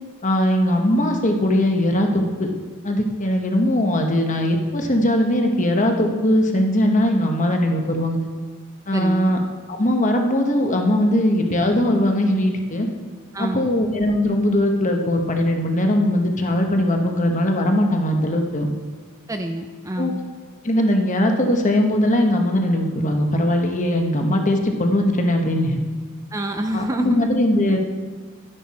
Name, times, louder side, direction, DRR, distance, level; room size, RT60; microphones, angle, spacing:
voice 1, 0.2-2.5 2.8-8.2 8.9-9.4 9.7-12.9 13.4-18.7 20.0-20.1 20.6-25.8 26.7-27.8, left 1 dB, 35° left, 3 dB, 1.2 m, -20 dB
voice 2, 8.9-9.3 13.3-13.7 19.3-20.2 26.3-27.3, right 1 dB, 15° right, 5 dB, 0.5 m, -27 dB
11.5 x 10.0 x 4.3 m, 1.4 s
head